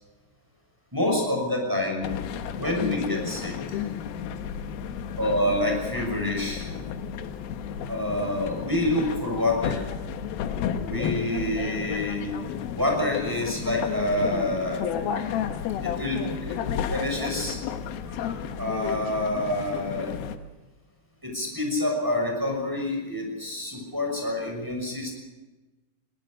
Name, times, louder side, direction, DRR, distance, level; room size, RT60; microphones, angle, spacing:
voice 1, 0.9-2.2 2.6-3.8 5.2-6.7 7.9-9.8 10.8-12.3 12.8-14.9 15.8-17.6 18.2-20.1 21.2-25.1, left 1 dB, 5° right, 0 dB, 5.5 m, -27 dB
sound 1, 2.0-20.4, left 8 dB, 80° left, 2.1 m, -32 dB
21.5 x 19.5 x 6.6 m, 1.1 s
omnidirectional pair, 5.8 m